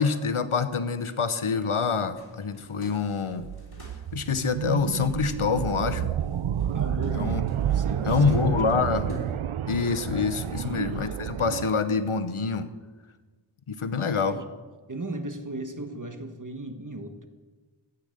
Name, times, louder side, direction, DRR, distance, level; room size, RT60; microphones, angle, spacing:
voice 1, 0.0-3.5 4.1-6.1 7.1-7.4 8.0-9.1 9.7-12.7 13.7-14.4, left 5 dB, 85° left, 10 dB, 0.9 m, -26 dB
sound 1, 2.1-9.3, equal, 50° left, 4.0 m, -47 dB
sound 2, 3.4-11.7, right 9 dB, 80° right, 0.6 m, -30 dB
voice 2, 6.7-7.4 7.7-8.4 8.7-8.8 10.3-10.9 14.1-14.4 14.9-17.3, right 1 dB, 40° right, 6 dB, 1.5 m, -37 dB
13.5 x 9.0 x 6.6 m, 1.4 s
wide cardioid pair, 40°, 49 cm